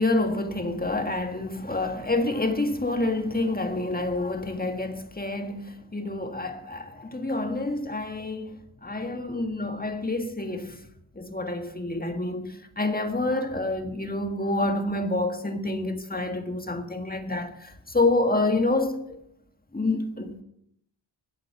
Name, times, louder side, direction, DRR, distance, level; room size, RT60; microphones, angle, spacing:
voice 1, 0.0-10.9 11.2-19.2 19.7-20.4, left 2 dB, 20° left, 1.6 m, -28 dB
14.0 x 8.3 x 7.3 m
wide cardioid pair, 75°, 49 cm